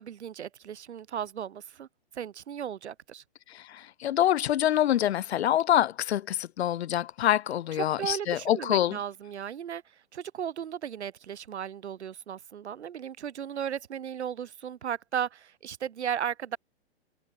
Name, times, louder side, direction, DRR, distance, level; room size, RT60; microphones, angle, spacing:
voice 1, 0.0-1.9 2.1-3.2 7.7-9.8 10.1-16.6, right 9 dB, 75° right, 3.2 m, -35 dB
voice 2, 3.5-9.0, left 11 dB, 70° left, 0.9 m, -26 dB
hypercardioid pair, 140°, 34 cm